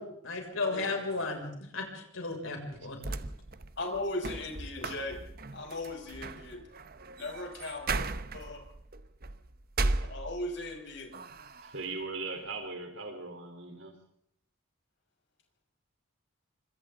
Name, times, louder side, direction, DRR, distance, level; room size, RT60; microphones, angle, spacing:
voice 1, 0.0-3.1, left 3 dB, 85° left, 2 dB, 6.6 m, -35 dB
voice 2, 2.4-2.8 11.6-13.9, right 3 dB, 70° right, 5 dB, 4.1 m, -39 dB
sound 1, 2.7-10.7 11.1-11.9, right 3 dB, 45° right, 1.0 m, -37 dB
voice 3, 3.8-5.2 5.5-6.6 7.2-8.1 8.3-8.6 9.8-11.1, left 2 dB, 60° left, 2 dB, 6.2 m, -37 dB
27.0 x 25.5 x 4.0 m, 0.71 s
head